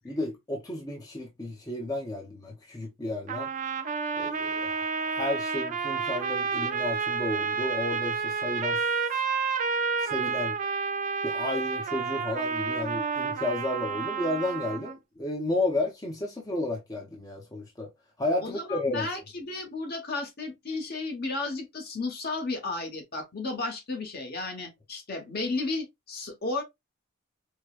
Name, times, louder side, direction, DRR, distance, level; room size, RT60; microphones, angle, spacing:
voice 1, 0.0-3.5 4.2-8.8 10.0-10.6 11.2-17.9 18.2-19.1, left 2 dB, 20° left, 0.6 m, -32 dB
sound 1, 3.3-15.0, right 5 dB, 35° right, 0.4 m, -30 dB
voice 2, 18.4-26.6, left 3 dB, 50° left, 1.1 m, -33 dB
4.7 x 2.1 x 2.3 m
head